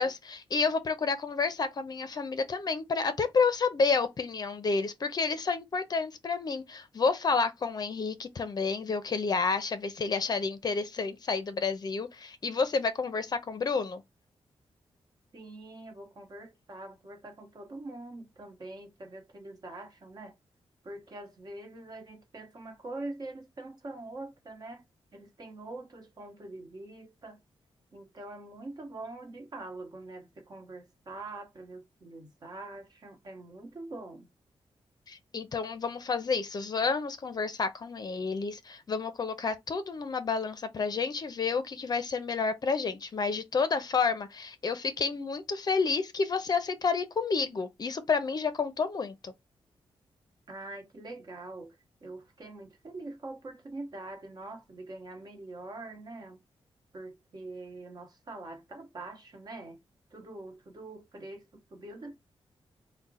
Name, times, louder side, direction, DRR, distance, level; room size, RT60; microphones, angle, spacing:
voice 1, 0.0-14.0 35.1-49.3, left 4 dB, 40° left, 0.5 m, -30 dB
voice 2, 15.3-20.3 20.8-24.8 25.1-27.4 27.9-34.3 50.5-56.4 56.9-59.8 60.1-62.2, right 2 dB, 40° right, 1.0 m, -44 dB
3.6 x 2.1 x 4.0 m
wide cardioid pair, 135°, 10 cm